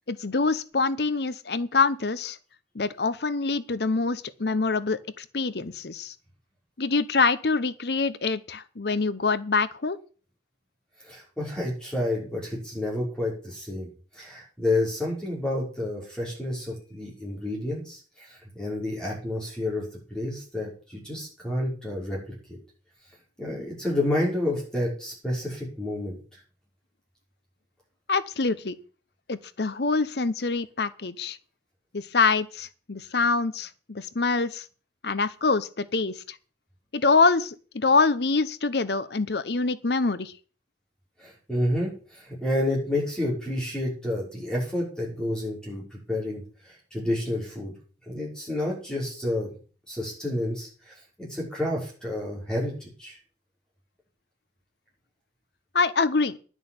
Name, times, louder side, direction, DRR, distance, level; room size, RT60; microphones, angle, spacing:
voice 1, 0.1-2.4 2.7-6.1 6.8-10.0 28.1-28.8 29.3-31.4 31.9-34.6 35.0-36.1 36.9-40.3 55.7-56.4, left 4 dB, 65° left, 0.8 m, -25 dB
voice 2, 11.0-13.9 14.1-22.2 22.5-22.6 23.4-26.2 41.2-46.4 46.9-47.7 48.1-49.5 49.9-53.2, left 1 dB, 5° left, 5.7 m, -30 dB
10.5 x 6.4 x 8.8 m
head